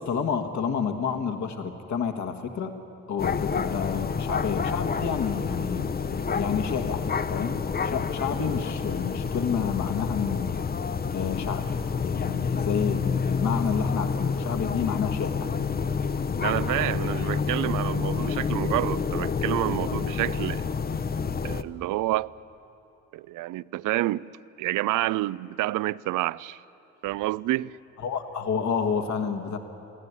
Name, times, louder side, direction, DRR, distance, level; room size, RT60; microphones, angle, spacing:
voice 1, 0.0-2.7 3.1-5.9 6.3-10.5 11.1-11.7 12.0-15.5 28.0-29.6, left 6 dB, 60° left, 1.7 m, -29 dB
sound 1, 3.2-21.6, left 5 dB, 30° left, 0.8 m, -28 dB
voice 2, 16.4-20.6 21.4-22.3 23.1-24.3 24.6-26.6 27.0-27.7, right 17 dB, 70° right, 0.5 m, -28 dB
22.5 x 14.5 x 9.7 m
supercardioid pair, 65°, 33 cm